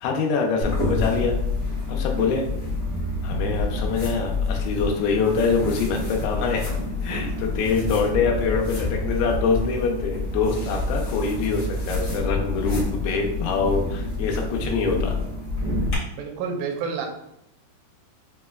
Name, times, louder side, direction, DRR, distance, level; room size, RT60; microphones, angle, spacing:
voice 1, 0.0-1.4 1.9-2.5 3.2-6.7 7.0-15.2, left 5 dB, 85° left, 1 dB, 2.4 m, -24 dB
sound 1, 0.6-15.9, left 2 dB, 65° left, 1.0 m, -27 dB
voice 2, 16.1-17.1, right 5 dB, 80° right, 2 dB, 2.1 m, -29 dB
6.1 x 2.1 x 2.2 m, 0.78 s
omnidirectional pair, 4.3 m